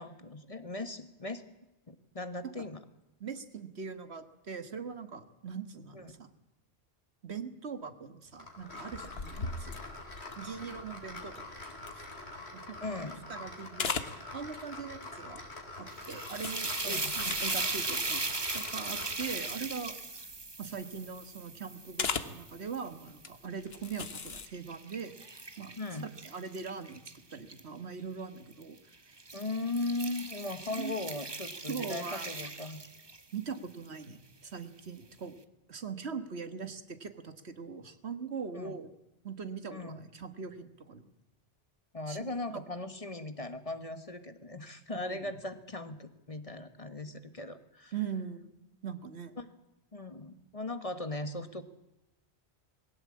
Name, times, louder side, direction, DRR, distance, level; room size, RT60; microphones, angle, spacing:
voice 1, 0.0-1.4 1.9-2.8 5.9-6.1 12.8-13.3 16.8-17.1 25.8-26.1 29.3-32.8 38.5-38.7 39.7-40.0 41.9-47.9 49.4-49.5 49.9-51.6, left 2 dB, 35° left, 11 dB, 1.4 m, -38 dB
voice 2, 3.2-6.4 7.2-9.8 10.4-11.4 11.9-12.1 12.5-12.8 13.3-15.4 15.8-20.0 20.6-25.1 25.6-25.8 26.2-27.0 27.3-28.8 30.7-31.0 31.7-32.3 33.3-35.4 35.7-38.9 39.2-41.1 42.1-42.6 44.9-45.2 47.9-48.5 48.8-49.3, right 6 dB, 80° right, 11 dB, 1.8 m, -41 dB
sound 1, 8.4-19.5, left 2 dB, 85° left, 4.6 m, -45 dB
sound 2, 8.9-12.6 13.0-13.4 13.7-14.2 15.3-15.6 16.1-19.0 19.4-19.5 19.8-20.0 20.3-21.0 22.0-22.4 23.1-23.3 23.7-24.5, left 5 dB, 70° left, 1.5 m, -39 dB
sound 3, 15.9-23.1 23.6-27.6 28.5-28.8 29.2-33.3, right 3 dB, 25° right, 1.1 m, -38 dB
21.0 x 17.0 x 8.6 m, 0.94 s
omnidirectional pair, 1.1 m